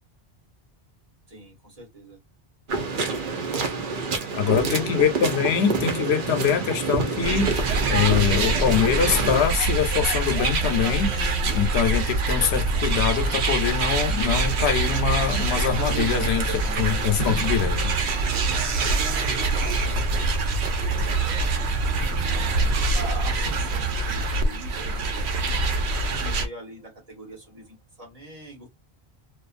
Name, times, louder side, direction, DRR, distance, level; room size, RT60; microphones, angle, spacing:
voice 1, 1.3-2.2 2.9-3.7 4.7-5.4 19.5-21.8 22.3-25.7 26.0-28.7, right 1 dB, 35° right, 1.2 m, -43 dB
sound 1, 2.7-9.4, right 4 dB, 55° right, 0.8 m, -28 dB
voice 2, 4.3-17.9, left 8 dB, 80° left, 0.8 m, -24 dB
sound 2, 7.2-26.5, right 3 dB, 85° right, 0.9 m, -24 dB
sound 3, 9.1-27.7, left 4 dB, 15° left, 0.7 m, -49 dB
2.4 x 2.3 x 2.4 m
omnidirectional pair, 1.1 m